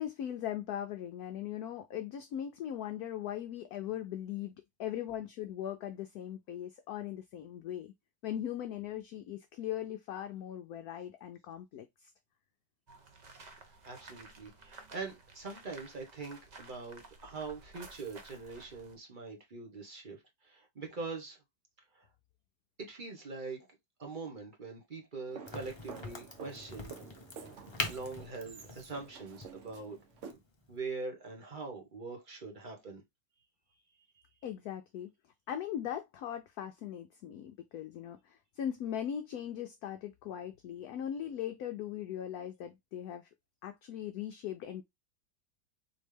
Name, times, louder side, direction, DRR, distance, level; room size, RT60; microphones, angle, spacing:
voice 1, 0.0-4.5 4.8-7.9 8.2-12.1 34.4-35.1 35.5-43.3 43.6-44.8, left 10 dB, 70° left, 0.9 m, -39 dB
sound 1, 12.9-19.0, right 3 dB, 75° right, 0.4 m, -54 dB
voice 2, 13.8-21.4 21.9-22.1 22.9-23.7 24.0-26.9 27.9-30.0 30.7-33.0, right 4 dB, 30° right, 1.1 m, -43 dB
sound 2, 25.3-30.3, right 5 dB, 60° right, 0.8 m, -50 dB
Crack, 25.5-30.9, left 2 dB, 25° left, 0.6 m, -43 dB
4.4 x 3.1 x 3.3 m
omnidirectional pair, 2.0 m